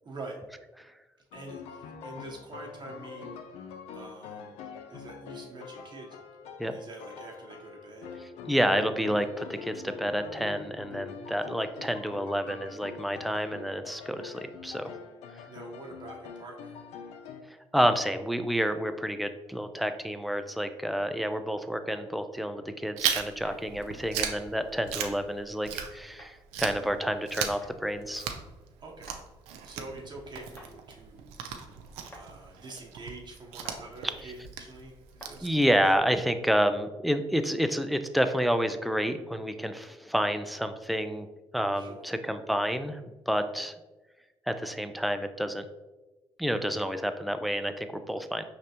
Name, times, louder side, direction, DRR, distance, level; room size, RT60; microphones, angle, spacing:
voice 1, 0.0-0.4 1.3-3.6 3.9-6.2 6.5-8.1 15.5-16.9 28.8-29.2 29.6-31.4 32.1-35.6 41.7-42.1, right 2 dB, 45° right, -1 dB, 0.9 m, -46 dB
sound 1, 1.3-17.4, left 6 dB, 85° left, 0.4 m, -44 dB
voice 2, 8.5-14.9 17.7-28.2 35.4-41.3 41.5-43.0 43.3-43.7 44.5-45.6 46.4-48.4, equal, ahead, 8 dB, 0.4 m, -29 dB
sound 2, 21.9-22.1 23.4-23.6 24.9-25.1 26.2-26.3 27.6-27.8 29.1-29.2 30.6-30.7 32.1-32.3 33.6-33.8 35.2-35.4, equal, 20° left, 1.2 m, -49 dB
Chewing mastication, 23.0-26.2 26.5-36.0, right 8 dB, 90° right, 0.4 m, -37 dB
4.9 x 3.3 x 2.8 m, 1.1 s
supercardioid pair, 60°, 11 cm